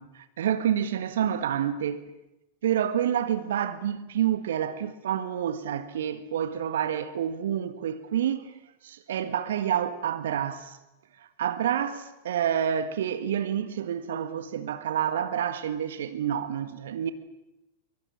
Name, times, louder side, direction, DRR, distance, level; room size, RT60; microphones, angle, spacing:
voice 1, 0.0-2.0 2.6-8.5 8.8-10.8 11.4-17.1, right 9 dB, 70° right, 1.6 m, -28 dB
24.5 x 24.0 x 8.7 m
figure-of-eight pair, 95°, 0 cm